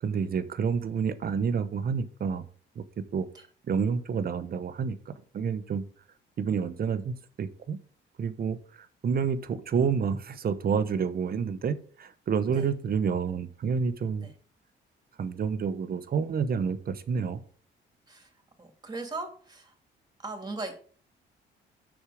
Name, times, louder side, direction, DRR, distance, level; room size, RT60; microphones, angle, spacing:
voice 1, 0.0-2.4 2.8-2.9 3.1-3.3 3.7-5.8 6.4-7.8 8.2-8.6 9.0-14.3 15.2-17.4, right 6 dB, 50° right, 12 dB, 0.9 m, -29 dB
voice 2, 18.6-19.7 20.2-20.8, right 3 dB, 20° right, 5 dB, 2.3 m, -38 dB
6.8 x 6.4 x 4.9 m, 0.44 s
cardioid pair, 90°, 20 cm